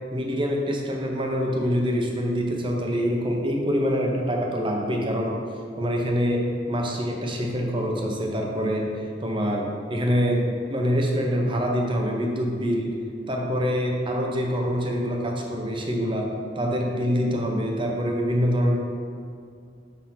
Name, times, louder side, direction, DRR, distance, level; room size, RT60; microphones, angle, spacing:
voice 1, 0.1-5.4 5.8-8.9 9.2-12.9 13.3-18.7, equal, 25° right, 0 dB, 0.8 m, -25 dB
5.9 x 3.5 x 5.7 m, 2.3 s
head